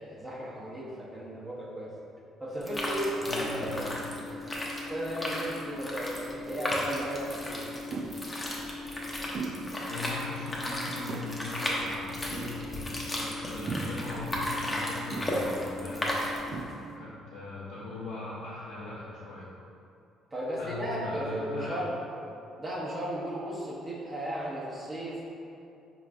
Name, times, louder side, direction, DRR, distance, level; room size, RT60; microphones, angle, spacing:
voice 1, 0.0-1.9 2.4-3.9 4.9-7.6 20.3-22.0 22.6-25.2, right 1 dB, 25° right, -6 dB, 1.0 m, -35 dB
sound 1, 2.6-16.6, left 1 dB, 20° left, 0.7 m, -34 dB
voice 2, 3.2-4.1 9.9-16.1 16.9-19.5 20.6-21.8, left 3 dB, 85° left, -9 dB, 0.7 m, -40 dB
sound 2, 7.9-8.3 9.3-9.8 10.2-10.3 10.9-11.5 12.3-12.9 13.7-14.1 15.1-15.6 16.1-16.2 16.5-16.9, right 4 dB, 50° right, 0.3 m, -38 dB
4.5 x 3.0 x 2.5 m, 2.7 s
supercardioid pair, 75°, 0 cm